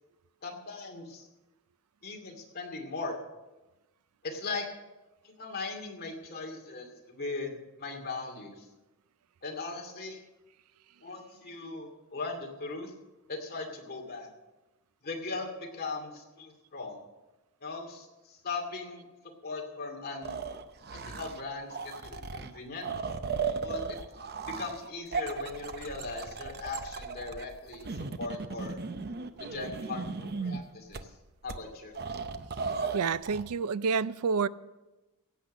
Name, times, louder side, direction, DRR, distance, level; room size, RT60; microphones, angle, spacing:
voice 1, 0.4-1.3 2.0-3.2 4.2-4.6 5.2-8.7 9.4-10.2 11.0-12.9 13.3-14.3 15.0-17.0 17.6-20.4 20.9-22.9 23.6-24.0 24.5-28.8 29.4-31.1 31.4-32.0, left 3 dB, 45° left, 2 dB, 2.4 m, -39 dB
sound 1, 20.2-21.4 21.7-30.6 30.9-31.0 31.5-31.6 31.9-33.4, right 4 dB, 45° right, 0.7 m, -36 dB
voice 2, 32.9-34.5, right 5 dB, 80° right, 17 dB, 0.4 m, -28 dB
16.5 x 8.3 x 6.4 m, 1.1 s
head